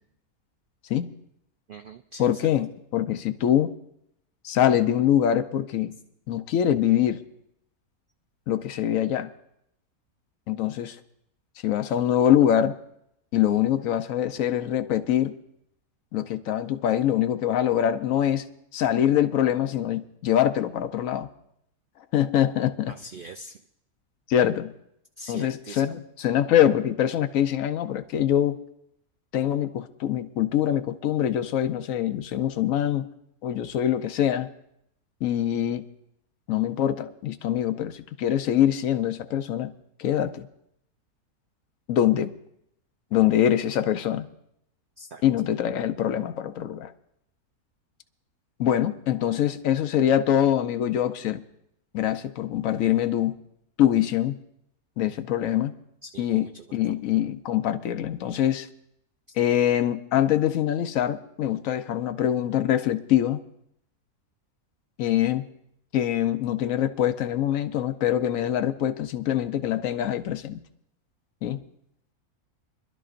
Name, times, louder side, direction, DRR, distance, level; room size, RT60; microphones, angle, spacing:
voice 1, 1.7-2.3 22.9-23.6 25.2-25.9 45.0-45.2 56.0-56.9, right 3 dB, 80° right, 6 dB, 0.4 m, -43 dB
voice 2, 2.2-3.7 4.4-5.9 6.3-7.2 8.5-9.3 10.5-11.0 11.6-12.8 13.3-15.3 16.1-18.4 18.7-21.3 22.1-22.9 24.3-24.7 25.3-28.6 29.3-33.1 33.4-34.5 35.2-35.8 36.5-39.7 40.0-40.5 41.9-42.3 43.1-44.3 45.2-46.9 48.6-51.4 51.9-53.4 53.8-54.4 55.0-55.7 56.2-58.7 59.4-63.4 65.0-65.4 65.9-70.6 71.4-71.6, left 11 dB, 70° left, 11 dB, 1.0 m, -24 dB
25.5 x 12.0 x 2.5 m, 0.75 s
omnidirectional pair, 1.6 m